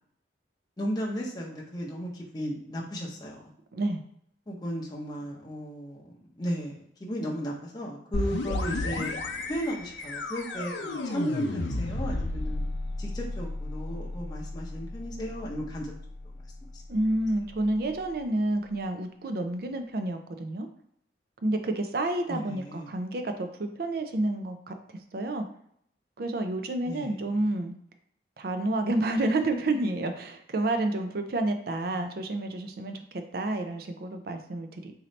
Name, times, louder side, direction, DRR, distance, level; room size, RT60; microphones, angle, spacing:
voice 1, 0.8-3.4 4.5-6.0 6.4-9.1 9.5-12.7 13.0-15.9 16.7-16.8 22.3-22.9 26.9-27.2 31.9-32.1, equal, 20° left, -3 dB, 0.6 m, -35 dB
sound 1, 8.1-17.7, left 2 dB, 85° left, 0.5 m, -34 dB
voice 2, 16.9-20.7 21.4-24.7 25.1-25.5 26.2-27.7 28.4-34.9, right 2 dB, 55° right, 7 dB, 0.4 m, -29 dB
4.0 x 2.7 x 3.1 m, 0.68 s
head